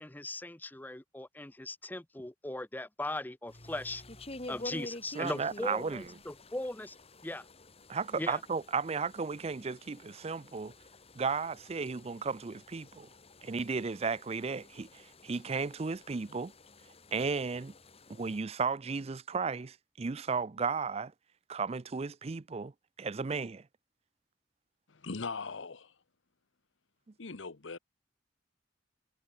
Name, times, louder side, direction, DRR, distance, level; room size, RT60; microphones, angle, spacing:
voice 1, 0.0-4.0 4.5-7.0 7.2-7.4 8.2-8.4, left 1 dB, 10° left, 0.7 m, -39 dB
sound 1, 3.5-18.4, left 2 dB, 30° left, 3.7 m, -50 dB
voice 2, 5.1-6.0 7.9-10.7 11.2-13.1 13.4-16.5 17.1-17.7 18.1-21.1 21.5-22.7 23.0-23.6, right 5 dB, 35° right, 0.5 m, -34 dB
voice 3, 24.9-25.9 27.2-27.8, left 4 dB, 80° left, 1.1 m, -40 dB
head